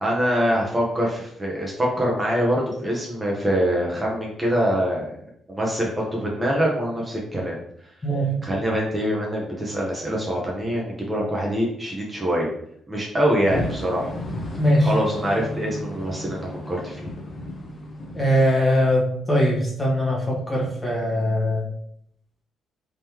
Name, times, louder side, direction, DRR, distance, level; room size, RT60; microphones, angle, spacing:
voice 1, 0.0-5.1 5.5-7.6 8.4-12.5 12.9-14.1 14.8-17.1, equal, 20° right, -3 dB, 0.8 m, -24 dB
voice 2, 8.0-8.4 14.6-14.9 18.1-21.6, equal, 20° left, -3 dB, 1.3 m, -21 dB
sound 1, 13.5-19.2, left 1 dB, 35° left, 0.8 m, -34 dB
3.6 x 3.0 x 3.0 m, 0.71 s
cardioid pair, 90°, 0 cm